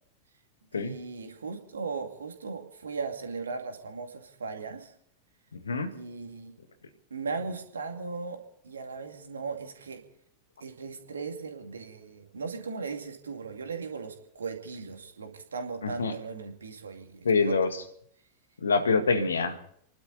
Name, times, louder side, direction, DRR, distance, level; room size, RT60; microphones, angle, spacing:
voice 1, 0.7-4.9 5.9-6.5 7.1-8.4 8.6-10.0 10.6-17.6, right 4 dB, 70° right, 4 dB, 2.4 m, -37 dB
voice 2, 5.5-5.9 15.8-16.1 17.2-17.7 18.6-19.6, left 4 dB, 70° left, 8 dB, 1.7 m, -25 dB
30.0 x 11.5 x 4.1 m, 0.66 s
figure-of-eight pair, 90°, 0 cm